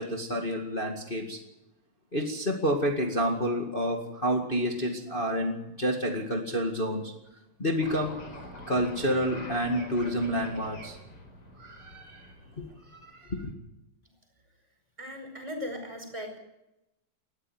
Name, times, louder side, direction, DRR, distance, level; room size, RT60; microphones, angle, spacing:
voice 1, 0.0-1.4 2.1-7.1 7.6-8.2 8.7-11.0 11.6-12.3 12.6-13.5, equal, 20° left, 2 dB, 1.4 m, -29 dB
sound 1, 7.8-13.2, left 1 dB, 40° left, 5.4 m, -45 dB
voice 2, 15.0-16.4, left 1 dB, 10° right, 4 dB, 4.8 m, -38 dB
19.5 x 14.0 x 9.4 m, 0.90 s
omnidirectional pair, 4.1 m